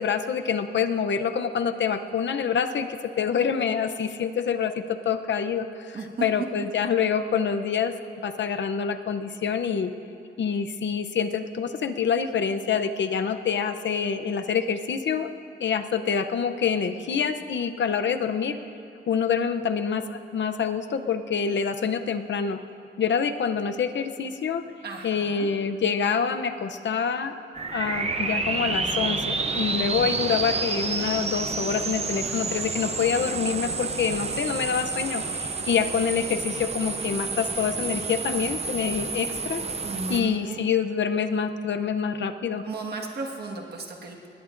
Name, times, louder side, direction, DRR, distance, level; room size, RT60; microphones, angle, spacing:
voice 1, 0.0-7.9 8.2-9.9 10.4-15.3 15.6-18.6 19.1-22.6 23.0-24.6 25.0-27.3 27.7-39.6 40.1-42.6, left 6 dB, 70° left, 8 dB, 0.7 m, -26 dB
voice 2, 5.9-6.2 24.8-25.5 39.8-40.6 42.6-44.4, right 3 dB, 55° right, 0 dB, 1.7 m, -35 dB
sound 1, 27.5-40.2, right 4 dB, 35° right, 0.7 m, -29 dB
20.5 x 19.5 x 2.6 m, 2.6 s
wide cardioid pair, 160°, 20 cm